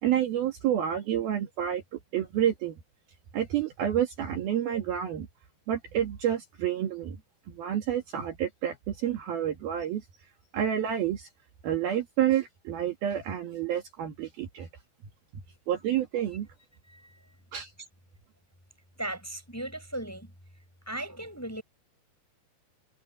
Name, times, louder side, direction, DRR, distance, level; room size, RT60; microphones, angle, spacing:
voice 1, 0.0-2.8 3.3-5.3 5.7-7.2 7.6-10.0 10.5-11.3 11.6-14.7 15.7-16.5 17.5-17.7, right 10 dB, 60° right, 3.4 m, -29 dB
voice 2, 16.9-17.2 19.0-20.3 20.9-21.6, right 1 dB, 5° left, 4.4 m, -37 dB
omnidirectional pair, 5.3 m